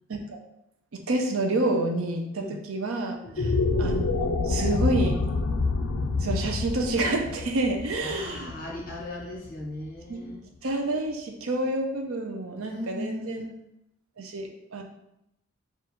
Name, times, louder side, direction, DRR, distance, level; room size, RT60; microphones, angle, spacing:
voice 1, 0.9-5.2 6.2-8.5 10.1-10.2 10.6-13.5 14.2-14.8, right 2 dB, 80° right, 3 dB, 0.6 m, -28 dB
sound 1, 3.2-9.6, left 3 dB, 80° left, 0.5 m, -27 dB
voice 2, 8.0-10.4 12.6-13.5, left 1 dB, 40° left, -2 dB, 0.9 m, -37 dB
3.8 x 2.5 x 4.2 m, 0.82 s
head